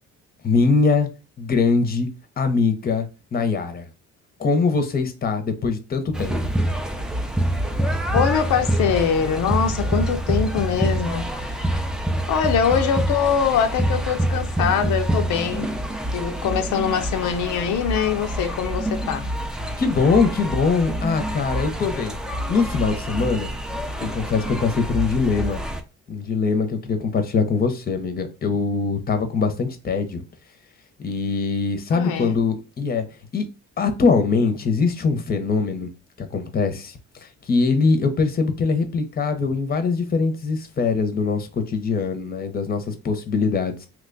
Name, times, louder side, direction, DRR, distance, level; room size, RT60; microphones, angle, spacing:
voice 1, 0.4-1.1 1.4-2.1 2.4-3.1 3.3-3.8 4.4-6.3 19.8-22.2 22.5-23.5 24.0-25.6 26.1-30.2 31.0-33.0 33.3-33.5 33.8-35.9 36.2-43.9, left 4 dB, 30° left, 0.7 m, -22 dB
sound 1, 6.1-25.8, right 1 dB, ahead, 0.4 m, -26 dB
voice 2, 8.1-11.9 12.3-15.7 16.1-19.3 31.9-32.4, left 7 dB, 80° left, 0.5 m, -23 dB
3.0 x 2.2 x 3.8 m
cardioid pair, 90°, 30 cm